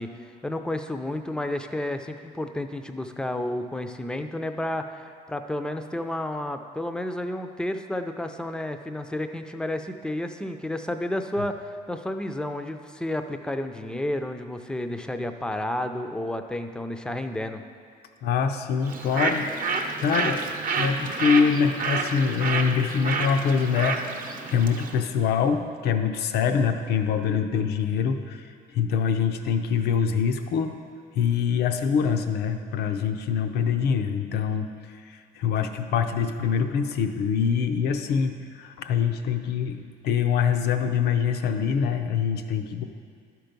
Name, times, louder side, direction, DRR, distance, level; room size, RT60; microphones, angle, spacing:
voice 1, 0.0-17.6, left 1 dB, 5° left, 7 dB, 0.5 m, -31 dB
voice 2, 18.2-19.5 20.0-20.5 20.8-28.5 28.7-30.8 31.1-42.8, left 6 dB, 75° left, 7 dB, 0.6 m, -24 dB
Bird, 18.8-25.0, right 4 dB, 50° right, 0.8 m, -29 dB
11.5 x 4.6 x 5.2 m, 2.1 s
cardioid pair, 110°, 17 cm